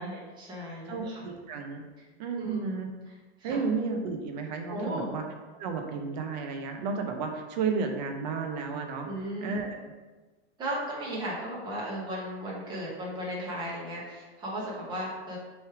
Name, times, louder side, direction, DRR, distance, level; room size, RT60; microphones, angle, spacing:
voice 1, 0.0-1.2 2.4-2.7 3.4-3.6 4.7-5.1 9.0-9.6 10.6-15.4, right 1 dB, 15° right, -5 dB, 1.1 m, -35 dB
voice 2, 0.9-1.9 2.2-2.9 3.4-5.2 5.6-9.8, right 5 dB, 40° right, 4 dB, 0.7 m, -32 dB
6.3 x 3.2 x 4.8 m, 1.3 s
supercardioid pair, 175°, 34 cm